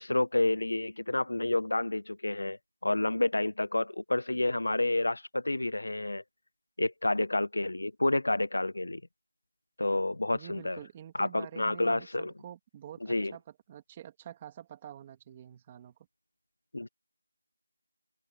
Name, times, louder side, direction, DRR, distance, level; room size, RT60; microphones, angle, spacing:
voice 1, 0.0-6.2 6.8-9.0 9.8-10.8 11.2-12.3 13.1-13.3 16.7-16.9, left 2 dB, 55° left, 1.0 m, -29 dB
voice 2, 10.3-13.4 13.7-16.0, right 10 dB, 10° right, 2.4 m, -47 dB
figure-of-eight pair, 175°, 0 cm